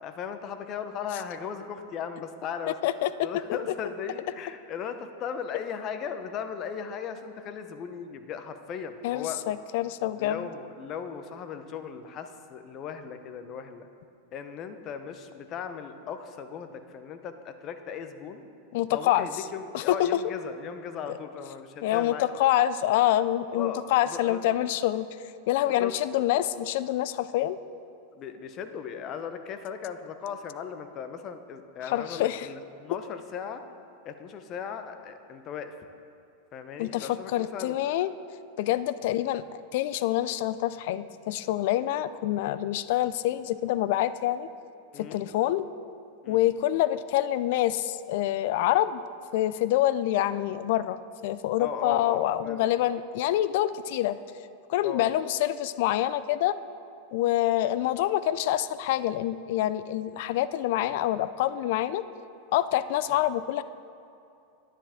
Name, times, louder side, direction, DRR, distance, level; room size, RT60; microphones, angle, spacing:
voice 1, 0.0-2.8 3.2-9.4 10.2-13.9 14.3-18.4 18.9-22.3 23.5-24.5 25.6-25.9 28.1-33.6 34.0-35.7 36.5-37.7 44.9-45.2 46.2-46.4 51.6-52.7 54.8-55.0 63.1-63.2, left 7 dB, 40° left, 9 dB, 0.8 m, -37 dB
voice 2, 2.8-3.3 9.0-10.5 18.7-19.3 19.7-20.1 21.8-25.1 25.5-27.6 31.9-32.5 36.8-38.1 38.6-44.5 45.0-45.6 46.3-49.0 49.3-54.2 54.7-56.6 57.1-62.0 62.5-63.6, left 13 dB, 60° left, 15 dB, 0.4 m, -26 dB
10.0 x 9.9 x 3.6 m, 2.6 s
hypercardioid pair, 95°, 0 cm